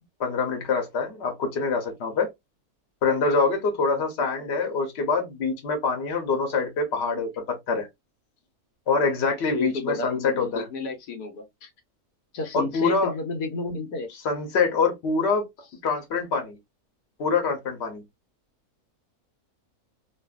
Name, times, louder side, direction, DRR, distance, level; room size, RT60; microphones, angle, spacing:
voice 1, 0.2-2.3 3.0-7.9 8.9-10.7 12.5-13.1 14.2-15.5 15.8-16.6 17.2-18.0, left 4 dB, 50° left, 1.1 m, -25 dB
voice 2, 9.5-11.7 12.3-14.1, left 3 dB, 85° left, 1.3 m, -31 dB
2.6 x 2.4 x 2.3 m
omnidirectional pair, 1.6 m